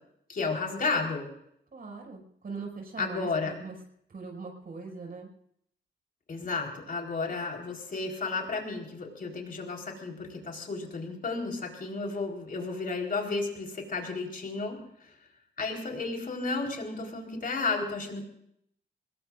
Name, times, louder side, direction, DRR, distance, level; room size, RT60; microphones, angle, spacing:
voice 1, 0.3-1.3 3.0-3.5 6.3-15.1 15.6-18.2, left 3 dB, 50° left, 1 dB, 4.3 m, -33 dB
voice 2, 1.7-3.8 4.1-5.3, right 4 dB, 50° right, 1 dB, 6.0 m, -41 dB
26.0 x 21.0 x 2.6 m, 0.71 s
cardioid pair, 110°, 19 cm